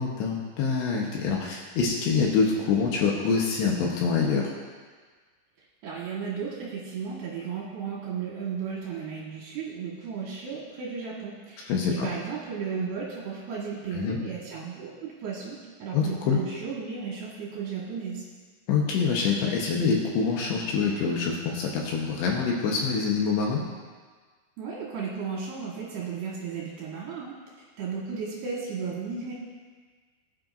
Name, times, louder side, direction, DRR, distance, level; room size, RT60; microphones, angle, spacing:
voice 1, 0.0-4.5 11.7-12.1 13.9-14.2 15.9-16.4 18.7-23.6, left 5 dB, 70° left, -2 dB, 3.1 m, -25 dB
voice 2, 5.8-18.2 24.6-27.3 27.8-29.3, right 6 dB, 65° right, -5 dB, 3.2 m, -34 dB
19.5 x 9.0 x 2.6 m, 1.5 s
omnidirectional pair, 5.8 m